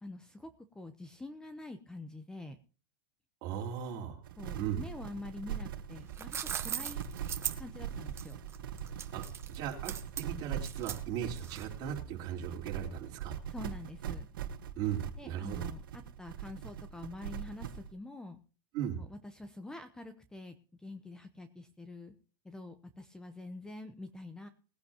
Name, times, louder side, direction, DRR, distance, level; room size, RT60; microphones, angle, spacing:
voice 1, 0.0-2.6 4.4-7.0 7.6-8.4 13.5-14.3 15.2-18.4 19.0-22.1 22.4-24.5, left 2 dB, 5° left, 9 dB, 0.9 m, -46 dB
voice 2, 3.4-4.2 4.6-4.8 9.1-13.4 14.8-15.6 18.7-19.0, right 9 dB, 40° right, 0 dB, 4.0 m, -37 dB
sound 1, 4.2-17.9, right 8 dB, 75° right, 1.5 m, -41 dB
sound 2, 5.9-11.9, right 9 dB, 20° right, 1.2 m, -40 dB
20.0 x 10.5 x 2.9 m, 0.37 s
supercardioid pair, 135°, 12 cm